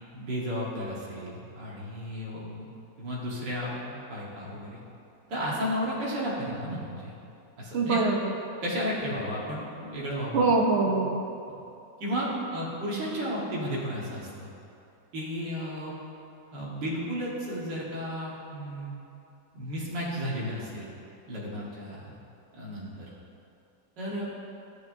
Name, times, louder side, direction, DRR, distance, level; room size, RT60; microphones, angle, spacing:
voice 1, 0.1-2.7 3.0-4.8 5.3-7.1 7.6-8.0 8.6-10.5 12.0-14.5 15.1-15.9 16.5-18.9 19.5-20.9 21.3-22.2 22.5-23.1 24.0-24.2, equal, 80° right, -6 dB, 2.3 m, -33 dB
voice 2, 7.7-8.3 10.3-11.2, right 3 dB, 55° right, 1 dB, 0.8 m, -24 dB
14.0 x 6.6 x 2.7 m, 2.7 s
omnidirectional pair, 1.9 m